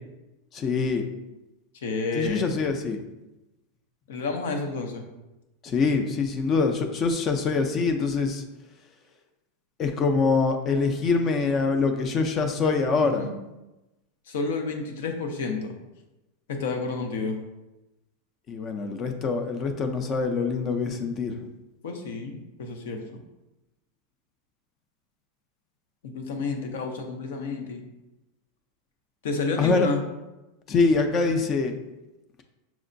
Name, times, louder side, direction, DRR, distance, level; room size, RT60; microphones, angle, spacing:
voice 1, 0.5-1.0 2.2-3.0 5.6-8.4 9.8-13.2 18.5-21.5 29.6-29.9 30.7-31.8, left 4 dB, 30° left, 6 dB, 0.4 m, -24 dB
voice 2, 1.8-2.5 4.1-5.0 13.0-13.3 14.3-15.7 16.5-17.4 21.8-23.2 26.0-27.8 29.2-30.0, left 4 dB, 75° left, 4 dB, 0.6 m, -30 dB
5.9 x 2.1 x 2.6 m, 1.0 s
supercardioid pair, 125°, 0 cm